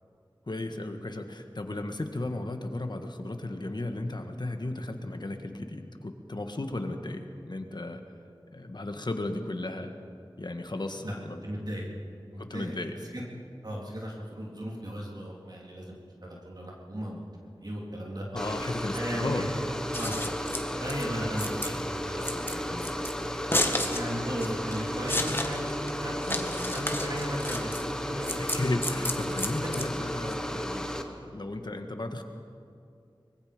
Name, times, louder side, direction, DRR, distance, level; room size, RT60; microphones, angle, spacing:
voice 1, 0.5-8.0 8.5-9.9 10.4-11.4 12.4-12.9 18.3-19.4 28.4-32.2, left 2 dB, 55° left, 5 dB, 1.7 m, -35 dB
voice 2, 11.4-11.9 12.3-12.7 13.0-13.2 13.6-18.2 18.9-19.5 19.9-20.3 20.8-23.1 23.9-26.4 26.7-28.4, equal, 50° right, -3 dB, 3.5 m, -36 dB
sound 1, 18.4-31.0, equal, 5° left, 1.6 m, -34 dB
Scissors, 19.7-30.3, left 1 dB, 25° left, 1.9 m, -33 dB
24.5 x 21.0 x 5.2 m, 2.5 s
wide cardioid pair, 60°, 9 cm